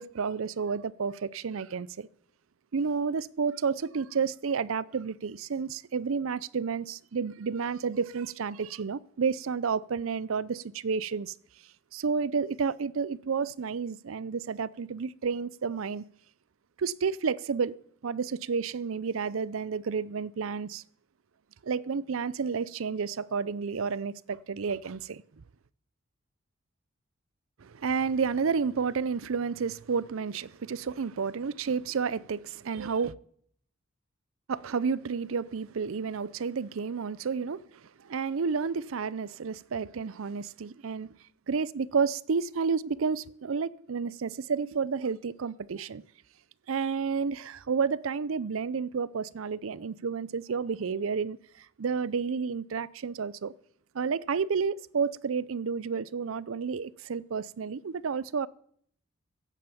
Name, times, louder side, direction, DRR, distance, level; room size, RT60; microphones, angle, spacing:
voice 1, 0.0-2.1 2.7-11.3 11.9-16.0 16.8-17.8 18.0-20.8 21.6-25.2 27.6-33.1 34.5-37.6 38.0-41.1 41.5-46.0 46.7-53.5 53.9-58.5, right 5 dB, 75° right, 0.5 m, -31 dB
15.5 x 9.2 x 6.9 m
head